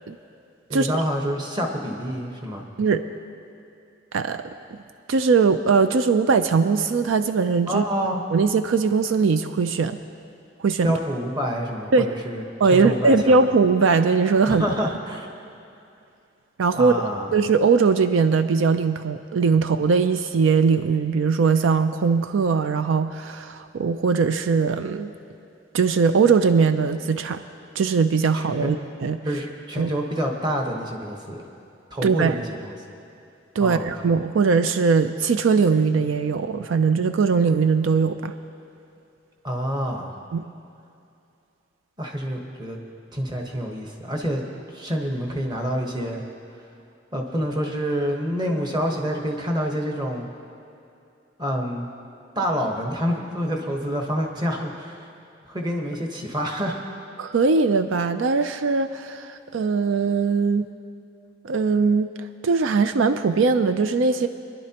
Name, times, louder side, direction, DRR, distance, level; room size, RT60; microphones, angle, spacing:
voice 1, 0.7-2.7 7.7-8.2 10.8-12.4 12.7-13.3 14.5-15.3 16.8-17.3 28.3-28.7 29.2-31.4 31.9-32.7 33.6-33.9 39.4-40.1 42.0-42.8 43.1-44.4 44.7-46.2 47.1-50.3 51.4-51.9 52.3-55.1 55.5-56.8, equal, 25° right, 1 dB, 1.2 m, -27 dB
voice 2, 4.1-4.4 5.1-7.8 8.3-10.0 10.6-11.0 11.9-12.1 12.6-14.6 16.6-16.9 17.3-25.1 25.7-27.4 27.8-29.2 29.8-29.9 32.0-32.3 33.6-38.3 40.3-40.4 57.2-60.7 61.4-62.1 62.4-64.3, right 5 dB, 85° right, 10 dB, 0.4 m, -20 dB
24.0 x 11.0 x 2.9 m, 2.6 s
head